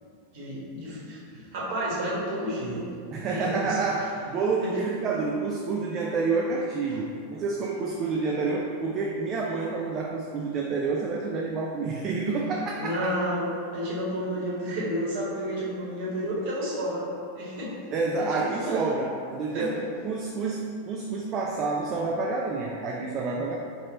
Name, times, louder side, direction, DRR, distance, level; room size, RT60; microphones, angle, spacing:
voice 1, 0.3-2.9 3.1-3.8 4.6-4.7 6.9-7.0 12.8-17.1 17.3-17.7 18.0-18.8 19.5-19.8, equal, 50° right, -6 dB, 1.2 m, -31 dB
voice 2, 3.1-13.1 17.9-23.6, right 4 dB, 30° right, -2 dB, 0.3 m, -29 dB
3.3 x 2.6 x 4.0 m, 2.4 s
figure-of-eight pair, 90°, 0 cm